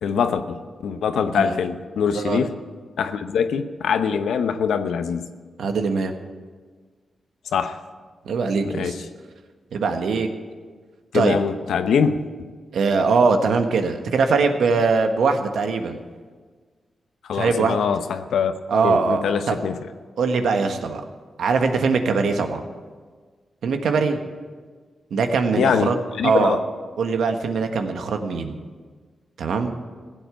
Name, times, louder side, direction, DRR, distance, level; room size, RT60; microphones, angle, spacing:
voice 1, 0.0-2.5 3.0-5.3 7.5-7.8 8.6-9.0 11.1-12.2 17.2-18.5 18.8-19.9 25.6-26.6, left 6 dB, 85° left, 9 dB, 0.9 m, -23 dB
voice 2, 5.6-6.1 8.2-8.9 9.7-10.3 11.1-11.4 12.7-16.0 17.3-17.8 18.7-19.6 20.2-21.0 21.4-22.6 23.6-24.2 25.1-26.0 26.2-26.6 27.0-28.6 29.4-29.7, right 4 dB, 80° right, 6 dB, 1.4 m, -21 dB
16.0 x 8.0 x 8.9 m, 1.5 s
cardioid pair, 70°, 0 cm